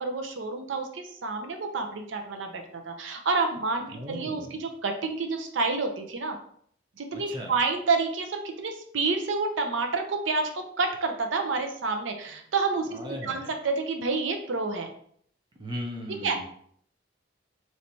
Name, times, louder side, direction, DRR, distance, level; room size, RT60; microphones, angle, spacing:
voice 1, 0.0-6.4 7.0-14.9 16.2-16.4, right 4 dB, 85° right, 5 dB, 0.6 m, -29 dB
voice 2, 3.9-4.6 7.1-7.5 12.9-13.5 15.6-16.4, equal, 25° right, 1 dB, 0.7 m, -37 dB
4.3 x 3.2 x 2.7 m, 0.63 s
head